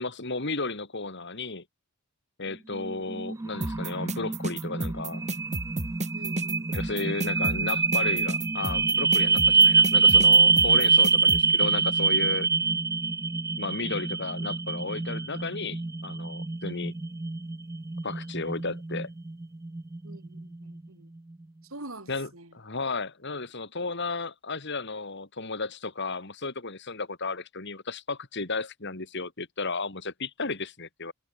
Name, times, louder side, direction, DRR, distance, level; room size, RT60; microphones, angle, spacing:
voice 1, 0.0-1.6 2.4-5.3 6.7-12.5 13.6-16.9 18.0-19.1 22.1-31.1, left 3 dB, 50° left, 2.6 m, -34 dB
sound 1, 2.7-20.8, right 4 dB, 15° right, 0.3 m, -25 dB
sound 2, 3.6-11.4, right 2 dB, 30° right, 6.6 m, -32 dB
voice 2, 6.1-6.7 20.0-21.1 21.6-22.5, right 2 dB, 65° right, 5.1 m, -45 dB
head